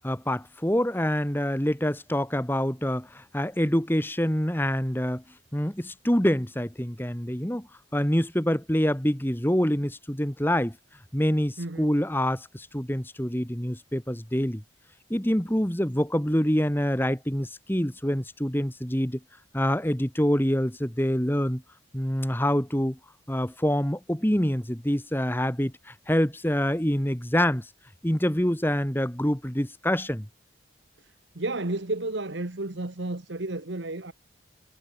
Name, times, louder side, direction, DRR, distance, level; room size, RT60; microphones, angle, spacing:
voice 1, 0.0-5.2 5.5-7.7 7.9-10.8 11.1-14.6 15.1-19.2 19.5-21.6 21.9-23.0 23.3-27.7 28.0-30.3, equal, 10° left, 1.7 m, -26 dB
voice 2, 11.6-11.9 31.3-34.1, right 2 dB, 65° right, 1.5 m, -32 dB
head